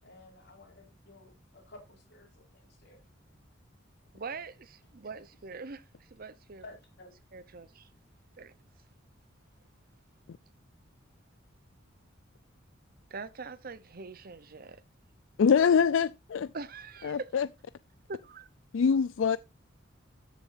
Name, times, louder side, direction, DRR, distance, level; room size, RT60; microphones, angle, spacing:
voice 1, 0.0-3.0 6.6-7.1, left 2 dB, 60° left, 4.9 m, -53 dB
voice 2, 4.1-6.6 7.3-7.9 8.4-8.5 13.1-14.8 16.5-17.3 18.1-18.5, right 4 dB, 50° right, 0.8 m, -43 dB
voice 3, 15.4-16.5 17.0-17.5 18.7-19.4, left 6 dB, 75° left, 0.4 m, -24 dB
13.5 x 7.0 x 2.6 m
head